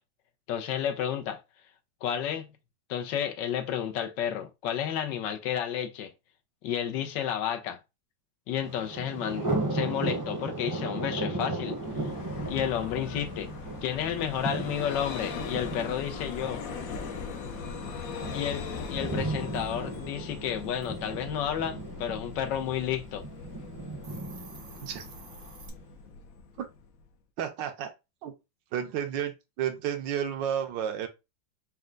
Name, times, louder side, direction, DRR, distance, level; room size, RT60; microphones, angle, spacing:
voice 1, 0.5-1.4 2.0-2.5 2.9-6.1 6.6-7.8 8.5-12.1 12.5-13.5 13.8-16.6 18.3-18.6 18.9-23.2, left 9 dB, 80° left, 1.3 m, -31 dB
Thunder, 8.6-25.6, right 2 dB, 15° right, 0.6 m, -36 dB
Vehicle, 11.6-27.1, left 6 dB, 65° left, 0.9 m, -40 dB
Hiss, 23.9-25.7, right 5 dB, 55° right, 1.0 m, -49 dB
voice 2, 27.4-27.9 28.2-28.3 28.7-31.1, right 9 dB, 80° right, 1.4 m, -31 dB
4.3 x 2.2 x 3.7 m
omnidirectional pair, 1.9 m